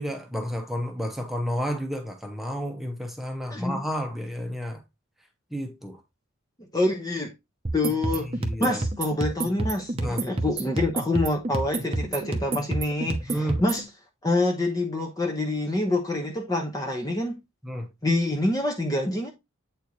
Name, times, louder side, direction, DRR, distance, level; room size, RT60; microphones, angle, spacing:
voice 1, 0.0-4.8 5.5-6.0 8.1-8.8 10.0-10.2 13.3-13.6 17.6-17.9, equal, ahead, 1.0 m, -31 dB
voice 2, 6.7-7.3 7.7-8.3 8.6-13.8 14.2-17.4 18.0-19.3, left 2 dB, 15° left, 0.9 m, -26 dB
sound 1, 7.6-13.8, right 2 dB, 25° right, 0.8 m, -29 dB
8.4 x 4.4 x 3.1 m
head